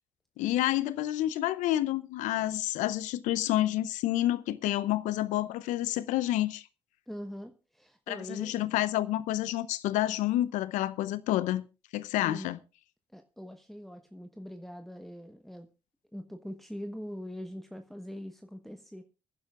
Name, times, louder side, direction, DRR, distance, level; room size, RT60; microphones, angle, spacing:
voice 1, 0.4-6.6 8.1-11.6 11.9-12.6, left 14 dB, 75° left, 0.7 m, -29 dB
voice 2, 7.1-8.6 12.2-12.5 13.1-15.7 16.1-19.0, equal, ahead, 1.2 m, -42 dB
25.5 x 10.5 x 2.4 m
hypercardioid pair, 50°, 13 cm